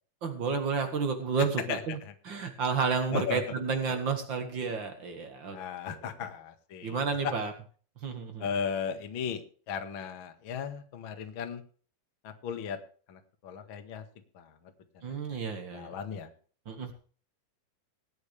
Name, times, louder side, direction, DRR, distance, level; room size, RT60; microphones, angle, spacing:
voice 1, 0.2-2.0 2.2-5.6 5.9-6.0 6.8-7.5 8.0-8.5 15.0-15.9 16.6-16.9, right 5 dB, 80° right, 6 dB, 1.0 m, -31 dB
voice 2, 1.7-2.1 3.1-3.5 5.5-7.3 8.4-9.4 9.7-11.6 12.2-12.8 13.1-14.0 14.3-14.5 15.3-16.3, left 7 dB, 55° left, 6 dB, 1.4 m, -36 dB
22.5 x 9.5 x 3.4 m, 0.42 s
omnidirectional pair, 5.1 m